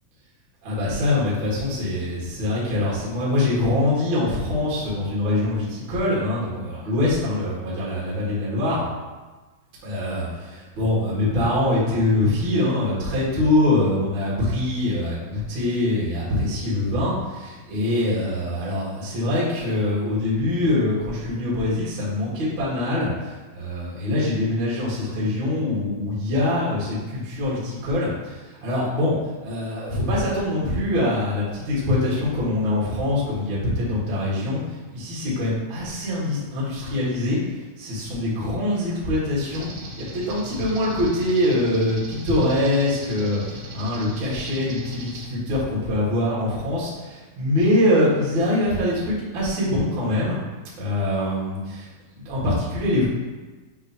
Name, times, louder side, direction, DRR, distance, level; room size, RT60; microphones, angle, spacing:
voice 1, 0.6-8.9 9.8-29.1 29.4-34.6 34.9-37.4 37.8-39.7 40.0-50.4 50.8-53.1, left 1 dB, 40° right, -7 dB, 1.9 m, -24 dB
sound 1, 39.5-45.3, equal, 60° right, 2.2 m, -38 dB
7.0 x 3.8 x 4.4 m, 1.3 s
omnidirectional pair, 4.5 m